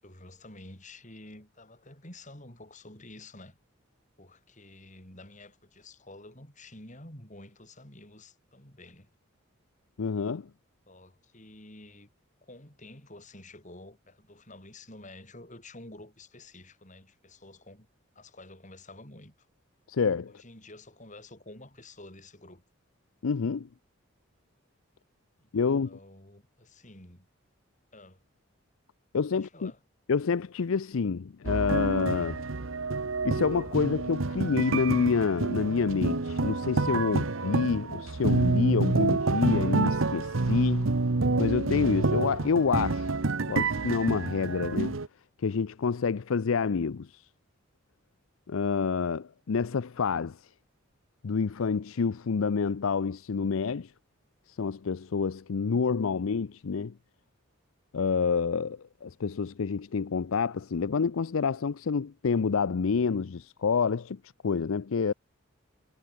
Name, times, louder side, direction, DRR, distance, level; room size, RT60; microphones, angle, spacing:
voice 1, 0.0-3.6 4.2-9.1 10.9-12.1 12.4-17.9 18.2-19.5 20.3-22.6 25.4-27.3 27.9-28.2 29.3-29.8, left 2 dB, 35° left, 6.9 m, -50 dB
voice 2, 10.0-10.5 19.9-20.3 23.2-23.7 25.5-26.0 29.1-29.7 30.1-32.4 33.2-40.9 41.4-43.1 43.5-45.0 45.4-47.2 48.5-50.4 51.2-53.9 54.6-56.9 57.9-65.1, left 5 dB, 75° left, 0.5 m, -28 dB
sound 1, 31.4-45.1, right 3 dB, 70° right, 1.0 m, -28 dB
head